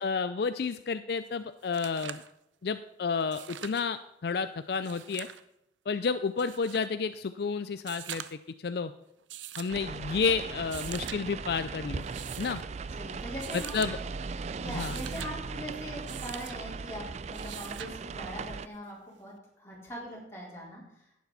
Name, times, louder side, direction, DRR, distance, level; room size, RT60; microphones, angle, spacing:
voice 1, 0.0-2.2 2.6-5.3 5.9-8.9 9.6-12.0 12.4-12.6 13.5-14.0 14.7-15.0, left 5 dB, 60° left, 11 dB, 0.4 m, -31 dB
sound 1, 1.3-1.4 1.6-2.3 3.2-3.9 4.7-5.4 6.4-6.9 7.8-8.5 9.3-9.8 10.6-11.2 12.0-12.6 13.4-13.9 14.6-15.3 16.1-16.6 17.3-18.0 19.4-19.5, right 11 dB, 90° right, 0.6 m, -43 dB
sound 2, 9.7-18.7, right 4 dB, 35° right, 0.3 m, -38 dB
voice 2, 12.9-13.7 14.4-21.0, equal, 15° left, -5 dB, 4.0 m, -42 dB
11.5 x 9.4 x 4.1 m, 0.85 s
head